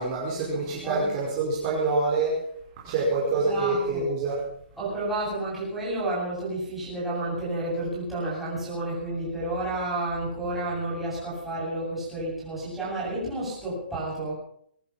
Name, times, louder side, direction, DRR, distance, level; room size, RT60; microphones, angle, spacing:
voice 1, 0.0-2.4 2.8-4.4, right 3 dB, 25° right, -5 dB, 5.0 m, -26 dB
voice 2, 3.4-4.1 4.8-14.3, right 2 dB, ahead, -9 dB, 7.7 m, -31 dB
22.5 x 11.0 x 5.9 m, 0.67 s
hypercardioid pair, 175°, 6 cm